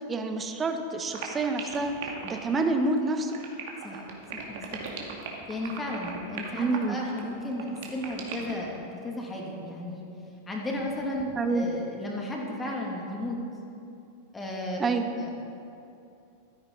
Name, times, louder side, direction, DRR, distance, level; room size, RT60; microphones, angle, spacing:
voice 1, 0.1-1.9 2.2-3.4 6.6-7.0 11.4-11.6 14.8-15.1, right 3 dB, 20° right, 7 dB, 1.1 m, -27 dB
sound 1, 1.1-8.7, right 6 dB, 50° right, 2.1 m, -38 dB
voice 2, 4.3-4.8 5.5-7.7 7.9-10.1 10.5-13.4 14.3-14.8 15.2-15.3, left 1 dB, 15° left, -1 dB, 2.5 m, -34 dB
15.5 x 13.5 x 4.0 m, 2.6 s
figure-of-eight pair, 90°, 0 cm